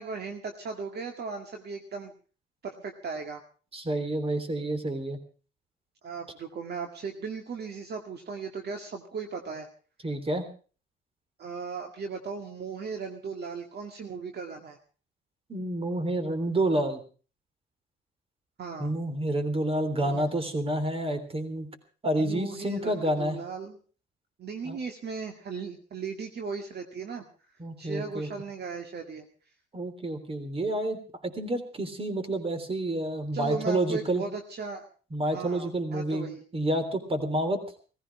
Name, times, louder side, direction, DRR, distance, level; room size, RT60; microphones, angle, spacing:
voice 1, 0.0-2.1 2.6-3.4 6.0-9.7 11.4-14.8 18.6-18.9 20.0-20.3 22.2-23.8 24.4-27.3 27.8-29.3 33.3-34.8 35.2-36.4, right 5 dB, 55° right, 4 dB, 2.1 m, -37 dB
voice 2, 3.7-5.2 10.0-10.5 15.5-17.0 18.8-21.7 22.0-23.4 24.6-24.8 27.6-28.3 29.7-34.2 35.1-36.3 36.5-37.6, right 1 dB, 30° right, 10 dB, 3.4 m, -29 dB
18.0 x 15.5 x 4.8 m, 0.39 s
cardioid pair, 90°, 20 cm